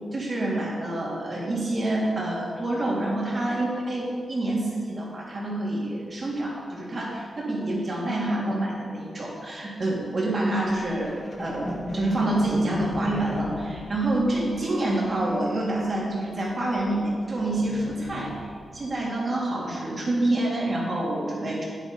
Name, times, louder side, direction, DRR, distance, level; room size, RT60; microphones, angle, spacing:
voice 1, 0.1-11.1 11.4-18.4 18.7-21.6, right 1 dB, 40° right, -4 dB, 3.3 m, -27 dB
sound 1, 10.6-16.2 16.5-18.8, left 1 dB, 40° left, 2.1 m, -37 dB
10.0 x 8.3 x 5.7 m, 2.1 s
cardioid pair, 85°, 0 cm